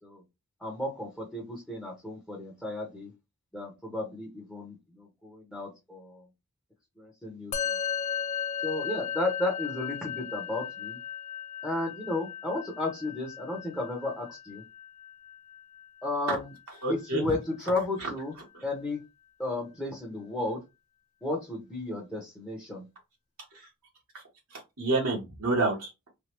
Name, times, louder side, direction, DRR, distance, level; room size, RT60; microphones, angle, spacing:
voice 1, 0.6-3.1 3.5-6.3 7.0-7.8 8.6-11.0 11.6-14.6 16.0-16.5 16.9-18.3 18.6-19.0 19.4-20.6 21.2-22.9, left 2 dB, 5° left, -3 dB, 0.9 m, -33 dB
Musical instrument, 7.5-17.1, left 8 dB, 30° left, 0.4 m, -36 dB
voice 2, 16.8-17.3 24.1-24.2 24.5-26.1, right 2 dB, 70° right, -2 dB, 1.2 m, -29 dB
3.2 x 2.2 x 2.9 m, 0.23 s
head